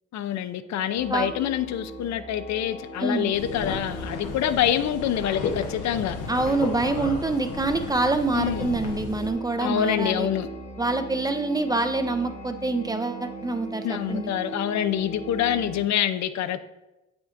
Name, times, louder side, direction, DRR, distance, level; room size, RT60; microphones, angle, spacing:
voice 1, 0.1-6.2 8.3-8.7 9.6-10.5 13.8-16.7, left 10 dB, 65° left, 12 dB, 0.5 m, -26 dB
sound 1, 0.9-15.9, right 2 dB, 20° left, 1.0 m, -39 dB
voice 2, 3.0-3.3 6.3-10.3 10.8-14.3, right 2 dB, 15° right, 7 dB, 0.5 m, -26 dB
sound 2, 3.3-9.3, left 4 dB, 90° left, 1.0 m, -34 dB
7.8 x 5.8 x 2.5 m, 0.99 s
cardioid pair, 90°, 30 cm